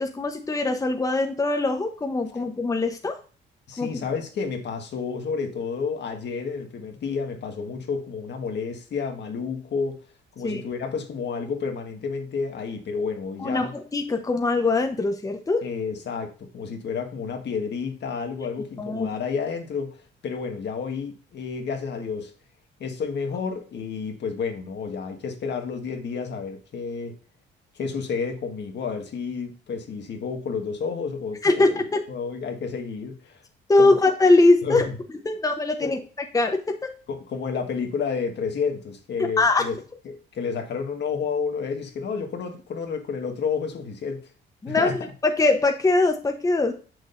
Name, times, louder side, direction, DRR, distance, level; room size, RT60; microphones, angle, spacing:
voice 1, 0.0-3.2 3.8-4.0 10.4-10.6 13.4-15.6 18.8-19.1 31.4-32.0 33.7-34.8 35.2-36.0 36.3-36.9 39.2-39.7 44.6-44.9 45.2-46.7, left 2 dB, 15° left, 0.8 m, -22 dB
voice 2, 3.7-10.0 10.3-13.7 15.6-22.3 22.8-27.2 27.7-31.6 32.1-33.4 33.8-34.0 34.6-34.9 35.8-36.0 37.1-39.7 40.0-44.3 44.7-45.1, left 5 dB, 60° left, 1.5 m, -30 dB
6.3 x 6.2 x 2.6 m
cardioid pair, 90°, 20 cm